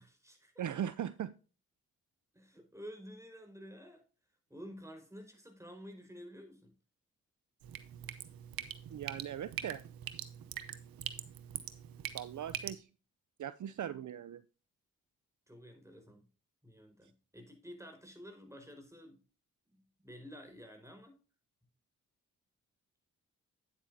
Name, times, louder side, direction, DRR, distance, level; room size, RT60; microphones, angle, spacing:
voice 1, 0.0-0.6 2.3-4.0 4.5-6.7 15.5-16.3 16.6-19.2 19.7-21.2, equal, 10° right, 4.6 m, -51 dB
voice 2, 0.6-1.3 8.9-9.8 10.1-10.3 12.1-12.9 13.4-14.4, right 10 dB, 60° right, 0.6 m, -39 dB
Drip, 7.6-12.7, right 10 dB, 90° right, 0.8 m, -43 dB
9.5 x 8.5 x 2.7 m
supercardioid pair, 40°, 34 cm